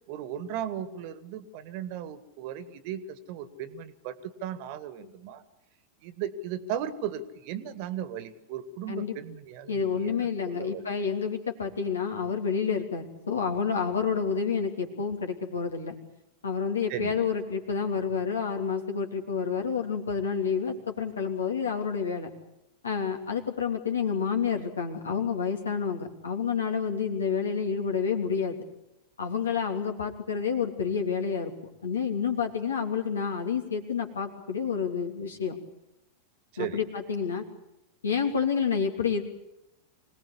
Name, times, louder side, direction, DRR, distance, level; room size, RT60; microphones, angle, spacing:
voice 1, 0.1-5.4 6.0-10.1 10.5-10.9 16.9-17.3 36.5-36.8, right 9 dB, 45° right, 14 dB, 1.8 m, -36 dB
voice 2, 9.7-16.0 16.4-22.3 22.8-28.6 29.2-31.5 31.8-35.6 36.6-37.4 38.0-39.2, left 6 dB, 70° left, 4 dB, 3.2 m, -29 dB
25.5 x 19.0 x 8.4 m, 0.89 s
figure-of-eight pair, 90°, 0 cm